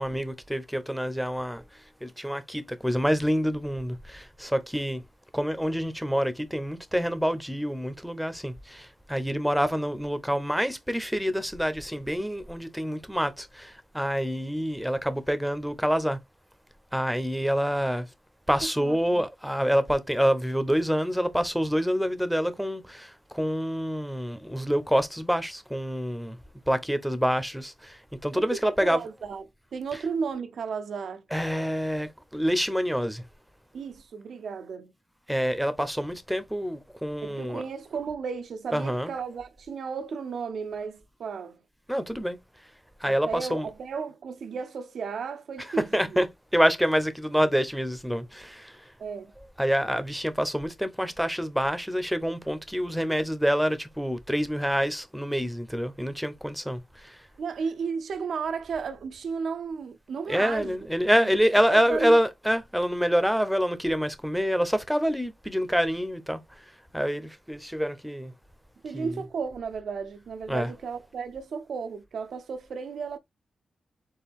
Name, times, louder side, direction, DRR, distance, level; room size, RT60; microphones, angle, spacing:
voice 1, 0.0-5.0 5.3-16.2 16.9-18.1 18.5-26.4 26.7-29.1 29.9-30.0 31.3-33.2 35.3-37.6 38.7-39.1 41.9-42.4 43.0-43.7 45.6-45.7 45.9-46.3 46.5-48.9 49.6-57.3 60.3-66.6 66.9-68.3 68.9-69.2 70.5-70.7, equal, ahead, 0.8 m, -27 dB
voice 2, 18.6-19.2 28.3-29.4 29.7-31.2 33.7-34.9 37.2-41.6 43.0-46.2 49.0-49.3 57.4-60.8 61.1-61.4 61.7-62.2 68.8-73.2, right 5 dB, 75° right, 0.6 m, -34 dB
4.5 x 3.4 x 3.5 m
cardioid pair, 85°, 0 cm